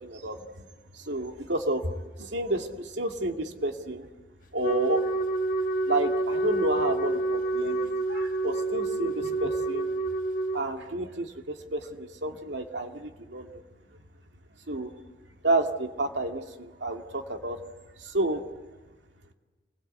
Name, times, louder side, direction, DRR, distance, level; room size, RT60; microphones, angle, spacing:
voice 1, 0.0-0.7 0.9-4.1 4.5-5.0 5.9-9.9 10.5-13.5 14.7-14.9 15.4-17.6 18.0-18.4, right 2 dB, 85° right, 4 dB, 2.3 m, -30 dB
Wind instrument woodwind instrument, 4.6-10.7, right 2 dB, 45° left, 1.4 m, -28 dB
28.0 x 21.0 x 8.2 m, 1.3 s
head